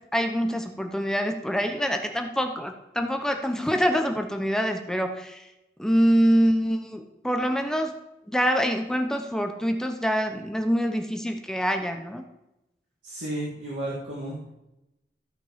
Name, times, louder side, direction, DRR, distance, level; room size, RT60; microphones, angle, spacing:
voice 1, 0.0-5.5 5.8-8.0 8.3-12.2, equal, 5° left, 5 dB, 0.7 m, -25 dB
voice 2, 13.0-14.5, right 1 dB, 85° right, -5 dB, 2.1 m, -33 dB
14.5 x 5.2 x 5.6 m, 0.91 s
head